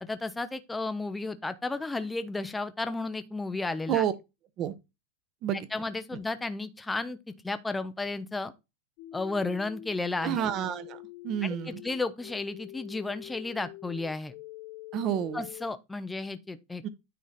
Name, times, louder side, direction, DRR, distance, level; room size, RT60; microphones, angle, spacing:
voice 1, 0.0-4.0 5.7-7.2 7.4-8.5 9.1-10.4 11.4-11.6 11.8-14.3 15.3-16.9, left 3 dB, 5° left, 0.5 m, -33 dB
sound 1, 9.0-15.7, left 16 dB, 50° left, 0.7 m, -46 dB
voice 2, 10.2-11.8 14.9-15.4 16.8-16.9, right 10 dB, 35° right, 0.9 m, -29 dB
9.4 x 3.9 x 4.1 m
supercardioid pair, 155°, 0 cm